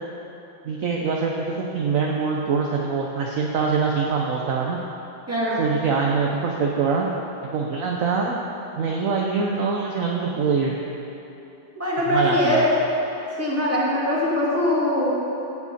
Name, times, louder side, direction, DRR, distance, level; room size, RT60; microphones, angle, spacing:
voice 1, 0.6-4.8 5.6-7.1 7.5-8.4 8.8-10.8 12.1-12.6, right 5 dB, 60° right, -1 dB, 0.9 m, -24 dB
voice 2, 5.3-5.6 11.8-12.6 13.4-15.1, left 1 dB, 5° right, -8 dB, 2.3 m, -22 dB
15.5 x 7.1 x 4.1 m, 2.9 s
omnidirectional pair, 2.1 m